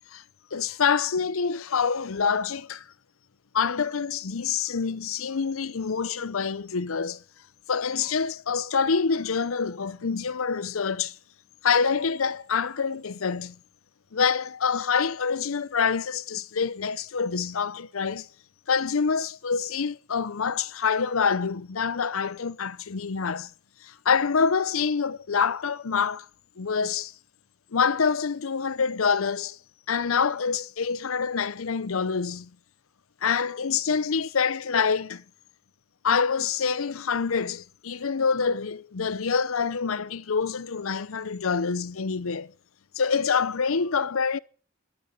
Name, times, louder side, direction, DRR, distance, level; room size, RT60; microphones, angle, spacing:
voice 1, 0.5-2.8 3.5-7.2 7.7-11.2 11.6-13.6 14.1-18.3 18.7-23.5 23.8-26.3 26.6-27.1 27.7-29.6 29.9-32.5 33.2-35.2 36.0-42.5 42.9-44.4, left 5 dB, 75° left, 0.7 m, -26 dB
13.0 x 9.5 x 10.0 m
head